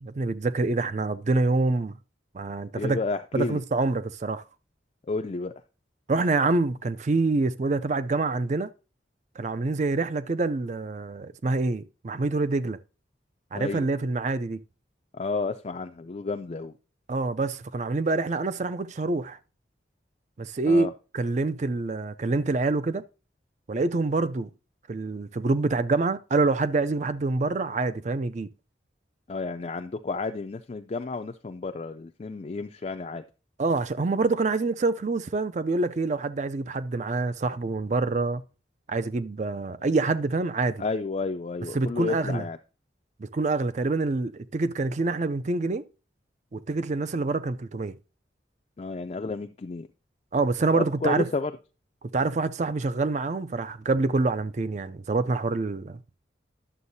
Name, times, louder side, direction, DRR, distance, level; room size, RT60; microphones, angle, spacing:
voice 1, 0.0-2.0 2.3-3.0 3.3-4.4 6.1-8.7 9.4-12.8 13.5-14.6 17.1-19.4 20.4-20.9 21.1-23.0 23.7-24.5 24.9-28.5 33.6-38.4 38.9-40.8 41.7-42.4 43.2-45.8 46.5-48.0 50.3-51.3 52.1-56.2, right 3 dB, 40° right, 0.4 m, -26 dB
voice 2, 2.7-3.6 5.0-5.5 13.5-13.9 15.1-16.7 20.6-20.9 29.3-33.2 40.8-42.6 48.8-49.9 50.7-51.5, left 3 dB, 35° left, 0.3 m, -31 dB
11.0 x 7.1 x 2.7 m
head